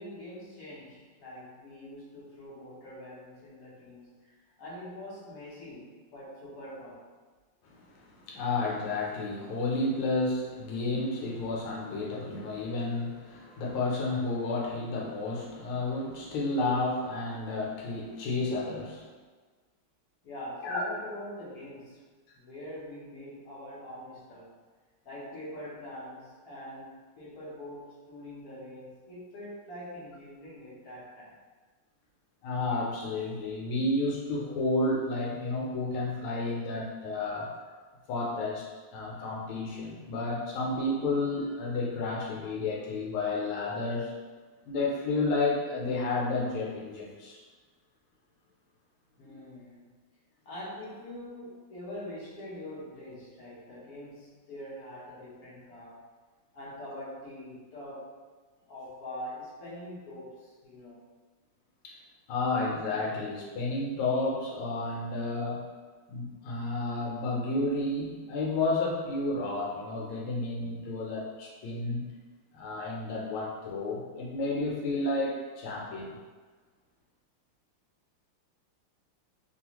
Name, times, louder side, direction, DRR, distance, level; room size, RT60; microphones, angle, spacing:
voice 1, 0.0-4.3 4.6-7.0 20.2-22.0 22.3-24.5 25.0-31.4 49.2-49.9 50.4-56.0 56.5-58.1 58.6-61.0, left 1 dB, 55° left, -7 dB, 1.1 m, -44 dB
voice 2, 8.0-19.0 20.6-20.8 32.4-37.5 38.1-44.1 44.7-47.4 61.8-61.9 62.3-65.7 66.1-72.0 72.5-76.2, left 2 dB, 85° left, -3 dB, 1.5 m, -31 dB
3.3 x 2.3 x 2.9 m, 1.4 s
omnidirectional pair, 2.3 m